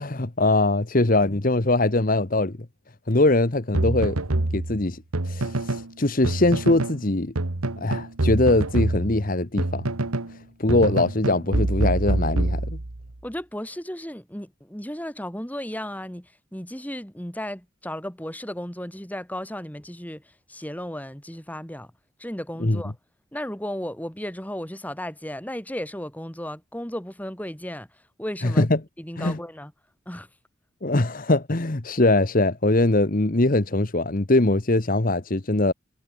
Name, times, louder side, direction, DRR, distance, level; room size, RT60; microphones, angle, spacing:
voice 1, 0.0-2.6 3.1-4.2 4.5-7.3 7.8-9.8 10.6-12.8 22.6-22.8 28.4-28.8 29.2-29.4 30.8-35.7, left 2 dB, 40° left, 1.1 m, -22 dB
sound 1, 3.7-5.9 6.2-7.0 7.3-10.3 10.7-13.1, right 2 dB, 90° right, 1.6 m, -26 dB
voice 2, 13.2-20.2 20.5-21.9 22.2-22.9 23.3-27.9 28.2-28.6 29.0-29.7 30.1-30.3, equal, 5° left, 2.5 m, -34 dB
head